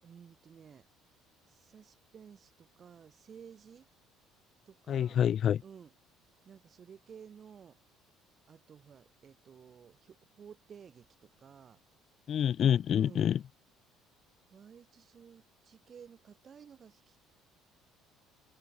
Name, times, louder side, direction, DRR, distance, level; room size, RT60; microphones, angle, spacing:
voice 1, 0.0-0.9 1.5-3.9 4.7-5.2 5.6-5.9 6.4-7.8 8.5-11.8 12.9-13.3 14.5-17.2, right 7 dB, 30° right, 6.3 m, -54 dB
voice 2, 4.9-5.6 12.3-13.4, left 9 dB, 40° left, 0.6 m, -27 dB
cardioid pair, 165°, 0 cm